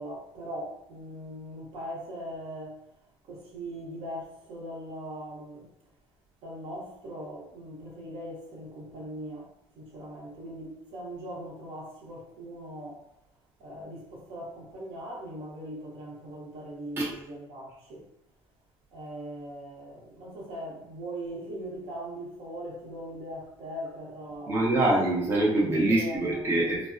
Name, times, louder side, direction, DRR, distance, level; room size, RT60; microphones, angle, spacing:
voice 1, 0.0-2.8 3.3-5.7 6.4-13.1 13.6-18.1 18.9-24.6 25.9-26.8, equal, 65° right, 0.8 m, -40 dB
voice 2, 24.5-26.9, right 2 dB, 25° right, 0.5 m, -24 dB
3.3 x 2.0 x 2.4 m
cardioid pair, 165°, 10 cm